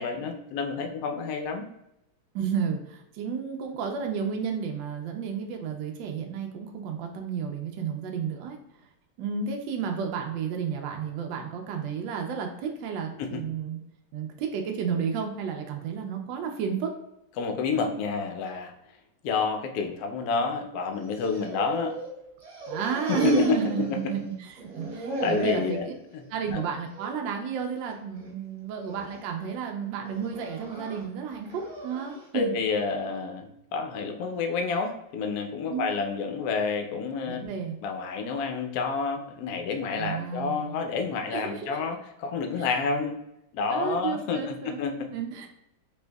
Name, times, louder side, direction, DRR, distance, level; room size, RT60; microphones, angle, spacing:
voice 1, 0.0-1.7 13.2-13.4 17.4-18.7 19.2-22.0 23.1-23.6 25.2-25.8 26.1-26.2 26.5-26.6 32.3-37.4 37.8-43.2 43.5-45.1, left 5 dB, 80° left, 5 dB, 0.8 m, -29 dB
voice 2, 2.3-8.6 9.2-13.8 14.1-16.9 22.7-25.9 26.3-32.5 35.7-35.9 37.3-37.7 40.0-40.7 41.3-41.8 42.6-42.7 43.7-44.8 45.1-45.5, right 6 dB, 75° right, 2 dB, 1.2 m, -31 dB
sound 1, 21.0-22.1 22.4-24.3 24.6-25.7 26.2-26.6 26.9-27.1 27.9-28.3 28.8-29.2 30.0-32.2, right 2 dB, 35° right, 1.6 m, -36 dB
4.3 x 2.5 x 2.2 m, 0.83 s
omnidirectional pair, 2.2 m